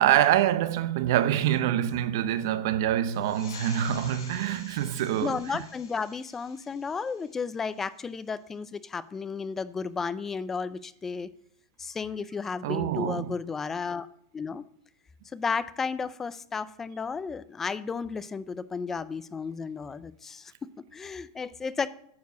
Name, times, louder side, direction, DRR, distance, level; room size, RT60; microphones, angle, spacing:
voice 1, 0.0-5.6 12.6-13.3, right 11 dB, 65° right, 0.8 m, -25 dB
sound 1, 3.1-8.2, left 6 dB, 85° left, 2.6 m, -49 dB
voice 2, 5.2-11.3 11.8-14.1 14.3-14.6 15.3-21.9, left 5 dB, 15° left, 0.4 m, -33 dB
9.4 x 4.6 x 6.8 m
supercardioid pair, 140°, 2 cm